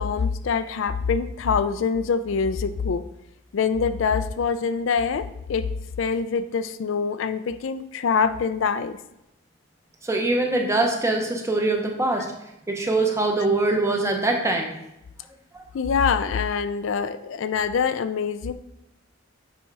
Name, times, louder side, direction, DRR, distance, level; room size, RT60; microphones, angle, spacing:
voice 1, 0.0-3.1 3.5-5.7 6.0-9.0 13.8-13.9 15.7-18.5, left 5 dB, 65° left, 12 dB, 0.4 m, -24 dB
voice 2, 10.0-12.3 12.7-14.8 15.5-15.6, right 2 dB, 15° right, 2 dB, 0.8 m, -23 dB
7.0 x 4.3 x 4.7 m, 0.86 s
head